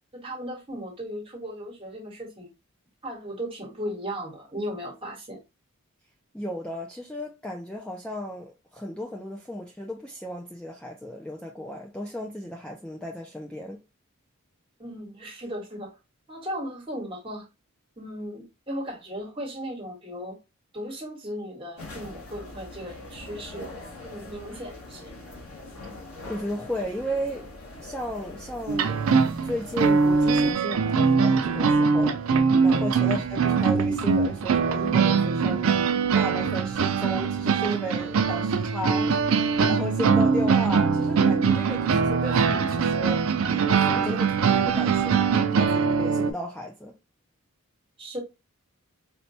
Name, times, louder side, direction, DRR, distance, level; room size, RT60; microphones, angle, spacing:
voice 1, 0.1-2.5 3.0-5.4 14.8-15.9 16.3-17.4 18.0-20.4 20.7-23.7 24.0-25.1 32.7-32.9 36.4-36.5 43.9-44.1 48.0-48.2, equal, 25° right, 1.2 m, -36 dB
voice 2, 6.3-13.8 26.3-27.5 27.8-29.1 29.4-35.7 36.1-39.1 39.5-43.3 43.7-46.9, equal, 5° left, 0.3 m, -34 dB
sound 1, 21.8-30.5, left 2 dB, 75° left, 1.3 m, -43 dB
sound 2, 28.7-46.3, right 5 dB, 65° right, 0.4 m, -22 dB
4.2 x 2.2 x 2.7 m
head